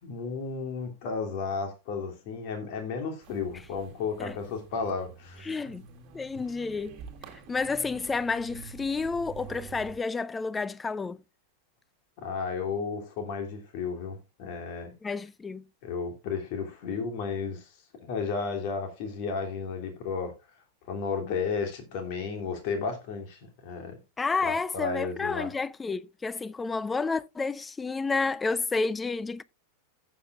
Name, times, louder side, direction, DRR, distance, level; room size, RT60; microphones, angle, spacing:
voice 1, 0.0-5.7 12.2-14.9 15.8-17.7 18.0-20.3 20.9-24.0 24.4-25.5, left 5 dB, 45° left, 2.8 m, -33 dB
sound 1, 3.2-10.0, right 6 dB, 35° right, 1.8 m, -48 dB
voice 2, 5.4-5.9 6.1-7.0 7.5-11.2 15.0-15.6 24.2-29.4, left 4 dB, 15° left, 0.4 m, -30 dB
15.5 x 7.4 x 2.4 m
figure-of-eight pair, 90°, 0 cm